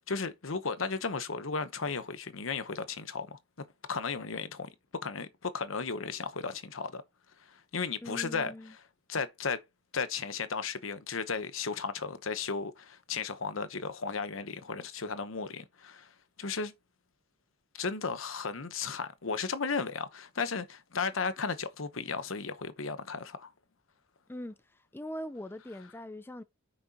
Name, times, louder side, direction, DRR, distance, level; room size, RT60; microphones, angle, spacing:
voice 1, 0.0-3.4 3.9-4.7 5.0-7.0 7.4-8.5 9.1-9.6 9.9-16.1 16.4-16.7 17.7-23.5, left 5 dB, 70° left, 1.0 m, -35 dB
voice 2, 8.0-8.7 24.3-26.4, left 1 dB, 10° left, 0.5 m, -42 dB
8.9 x 6.2 x 2.9 m
head